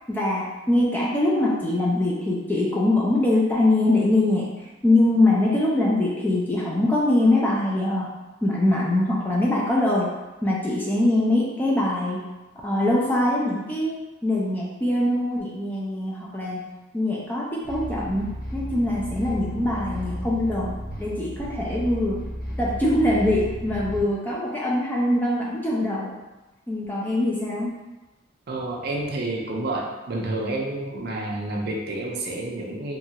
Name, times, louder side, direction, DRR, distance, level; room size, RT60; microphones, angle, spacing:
voice 1, 0.1-8.1 8.4-10.1 10.4-12.2 12.6-16.7 16.9-22.2 22.6-26.2 26.7-27.7, left 1 dB, 10° left, -5 dB, 0.4 m, -23 dB
sound 1, 17.6-24.0, equal, 55° left, 0.9 m, -33 dB
voice 2, 28.5-33.0, right 2 dB, 55° right, -1 dB, 0.5 m, -29 dB
2.9 x 2.3 x 2.8 m, 1.1 s
head